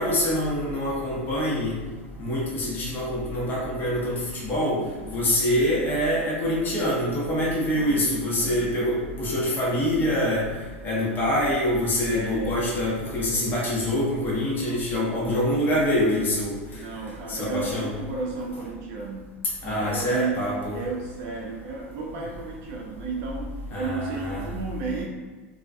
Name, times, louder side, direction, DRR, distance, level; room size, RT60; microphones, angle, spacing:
voice 1, 0.0-1.7 2.2-4.8 5.1-10.5 10.8-16.6 17.3-17.9 19.6-20.7 23.7-24.5, left 1 dB, 30° left, -6 dB, 0.9 m, -25 dB
voice 2, 4.8-5.2 7.7-8.6 12.1-12.6 16.7-19.3 19.6-20.4 20.7-23.5 23.8-25.1, right 4 dB, 55° right, -1 dB, 0.4 m, -33 dB
2.3 x 2.2 x 2.6 m, 1.4 s
hypercardioid pair, 100°, 7 cm